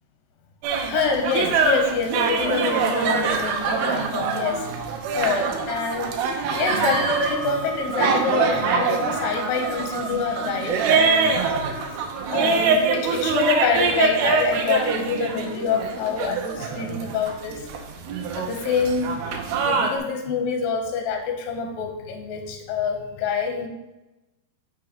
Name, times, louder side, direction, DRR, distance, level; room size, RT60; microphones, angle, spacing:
sound 1, 0.6-20.0, right 5 dB, 90° right, 2.7 m, -24 dB
voice 1, 0.9-4.7 5.1-6.2 6.6-11.4 11.9-12.0 12.3-17.7 18.3-19.2 19.5-23.7, left 5 dB, 80° left, 4 dB, 2.5 m, -26 dB
sound 2, 3.1-4.9 5.2-5.3 5.7-6.3 6.6-14.7, right 2 dB, 40° left, 2.2 m, -38 dB
8.5 x 6.4 x 2.9 m, 1.0 s
omnidirectional pair, 4.3 m